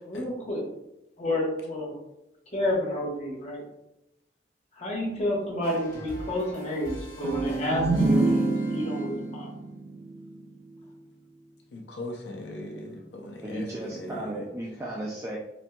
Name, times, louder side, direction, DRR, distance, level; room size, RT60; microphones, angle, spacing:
voice 1, 0.1-0.6 1.2-1.9 2.5-3.6 4.8-9.5, left 1 dB, 40° left, -3 dB, 1.0 m, -30 dB
sound 1, 5.6-9.5, equal, 55° left, 1.4 m, -42 dB
sound 2, 7.2-10.9, right 2 dB, 75° right, 0.6 m, -27 dB
voice 2, 11.7-14.3, left 1 dB, 75° left, 1 dB, 0.5 m, -39 dB
voice 3, 13.4-15.4, right 1 dB, 15° right, -4 dB, 0.4 m, -35 dB
4.2 x 2.6 x 2.2 m, 0.88 s
head